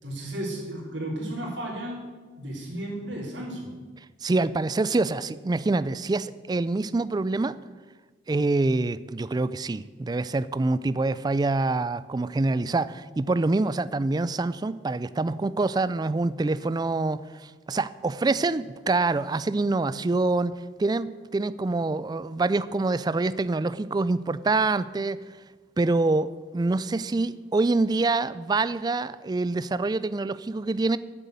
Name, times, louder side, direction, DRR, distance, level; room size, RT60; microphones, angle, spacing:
voice 1, 0.0-2.1 2.4-3.7, right 1 dB, 65° right, -4 dB, 3.7 m, -34 dB
voice 2, 4.2-7.6 8.3-20.5 20.8-25.2 25.8-31.0, right 3 dB, 20° right, 16 dB, 0.3 m, -26 dB
9.3 x 8.0 x 8.3 m, 1.4 s
head